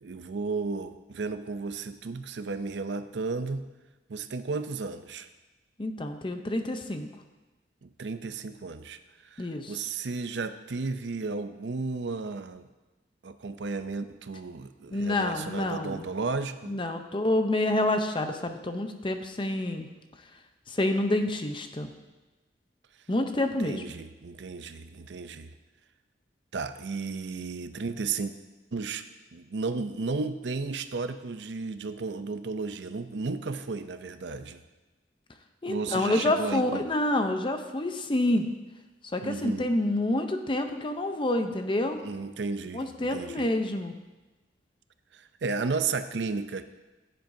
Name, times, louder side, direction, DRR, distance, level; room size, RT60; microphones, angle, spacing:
voice 1, 0.0-3.7 4.1-5.3 7.8-12.7 13.2-16.8 23.6-25.5 26.5-28.3 28.7-29.0 29.3-34.6 35.7-36.9 39.2-39.7 42.0-43.5 45.1-46.6, right 4 dB, 75° right, 10 dB, 0.5 m, -33 dB
voice 2, 5.8-7.1 9.4-9.7 14.9-16.1 16.7-19.9 20.7-21.9 23.1-23.8 35.6-38.5 39.1-42.0 42.7-43.9, left 1 dB, 30° left, 6 dB, 0.7 m, -28 dB
15.0 x 7.8 x 2.7 m, 1.1 s
head